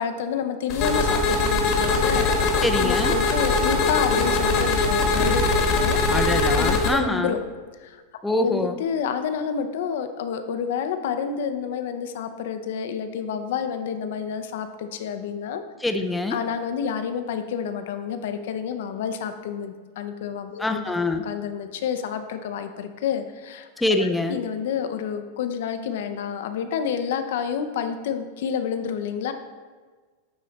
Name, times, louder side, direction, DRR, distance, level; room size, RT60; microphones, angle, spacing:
voice 1, 0.0-2.5 2.8-6.0 6.6-7.4 7.8-8.0 8.4-15.6 16.3-29.3, left 7 dB, 70° left, 8 dB, 0.5 m, -29 dB
sound 1, 0.7-6.9, left 3 dB, 45° left, 1.1 m, -21 dB
voice 2, 2.6-3.1 6.1-7.4 8.2-8.8 15.8-16.4 20.6-21.2 23.8-24.4, left 2 dB, 5° left, 6 dB, 0.4 m, -24 dB
9.4 x 3.2 x 4.0 m, 1.5 s
supercardioid pair, 135°, 0 cm